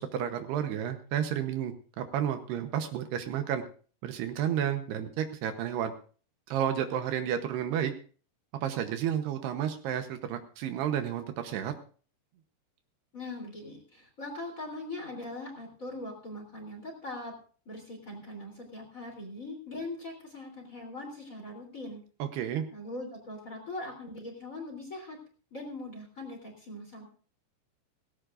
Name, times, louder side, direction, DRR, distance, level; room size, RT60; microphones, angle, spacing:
voice 1, 0.0-3.6 4.0-5.9 6.5-7.9 8.5-11.7 22.2-22.7, right 9 dB, 75° right, 7 dB, 3.0 m, -31 dB
voice 2, 13.1-17.3 17.6-22.0 22.7-25.2 25.5-27.1, left 2 dB, 20° left, 3 dB, 3.1 m, -41 dB
18.0 x 17.0 x 2.6 m, 0.41 s
omnidirectional pair, 4.9 m